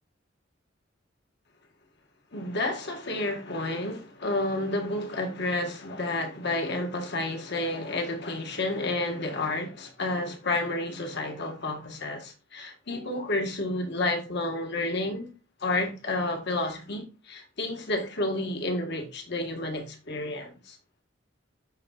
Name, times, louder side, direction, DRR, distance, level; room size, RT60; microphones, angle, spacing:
voice 1, 2.3-15.3 15.6-20.8, left 2 dB, 60° left, 1.6 m, -30 dB
12.0 x 4.0 x 2.4 m
head